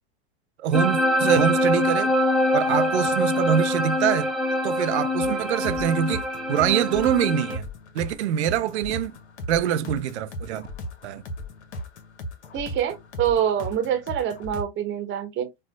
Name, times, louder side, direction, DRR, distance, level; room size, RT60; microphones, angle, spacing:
voice 1, 0.6-2.1 2.5-4.3 4.6-7.7 7.9-9.2 9.5-10.7 11.0-11.2, right 10 dB, 75° right, 0.5 m, -24 dB
sound 1, 0.7-7.6, left 1 dB, ahead, 0.3 m, -24 dB
sound 2, 5.2-14.6, left 1 dB, 80° left, 0.7 m, -37 dB
voice 2, 12.5-15.5, right 9 dB, 35° right, 0.9 m, -25 dB
4.4 x 2.1 x 2.2 m
hypercardioid pair, 95°, 33 cm